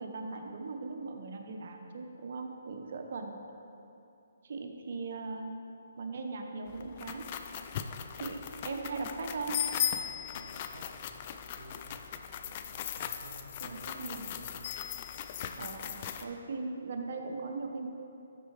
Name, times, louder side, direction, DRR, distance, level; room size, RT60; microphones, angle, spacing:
voice 1, 0.0-3.3 4.4-5.6 6.0-7.3 8.1-9.6 13.6-14.4 15.6-17.9, right 3 dB, 55° right, 3 dB, 0.8 m, -39 dB
voice 2, 2.7-3.0 10.3-11.3 11.6-14.0 14.3-14.8 15.5-15.7, right 2 dB, 90° right, 3 dB, 0.9 m, -54 dB
sound 1, 6.7-16.2, left 9 dB, 35° left, 0.3 m, -38 dB
12.0 x 4.7 x 3.2 m, 2.7 s
hypercardioid pair, 155°, 0 cm